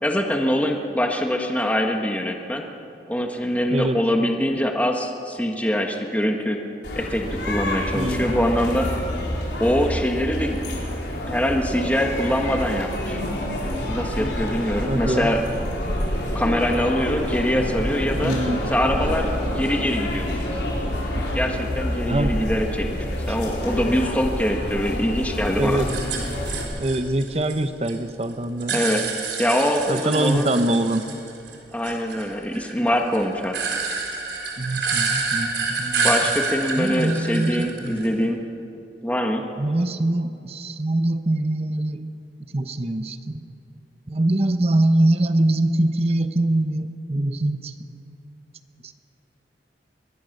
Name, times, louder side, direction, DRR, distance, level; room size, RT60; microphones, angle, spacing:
voice 1, 0.0-2.6 3.1-6.6 6.9-8.9 9.6-10.6 11.3-13.2 13.9-15.4 16.3-18.3 18.7-20.5 21.3-25.8 28.7-29.0 29.4-30.5 31.7-33.6 36.0-38.4 39.0-39.4, equal, 10° left, 2 dB, 1.4 m, -23 dB
sound 1, 6.8-26.6, left 1 dB, 80° left, 4.6 m, -27 dB
voice 2, 7.9-8.3 14.9-15.3 18.2-18.6 22.1-22.4 23.3-23.4 25.6-25.9 26.8-28.8 29.9-31.1 34.6-36.1 36.7-38.1 39.6-42.1 42.5-43.4 44.1-47.7 48.8-48.9, right 1 dB, 35° right, 9 dB, 0.9 m, -23 dB
sound 2, 25.9-27.9 28.2-31.6 31.8-38.2, right 4 dB, 85° right, 4.0 m, -28 dB
23.0 x 20.5 x 6.6 m, 2.7 s
head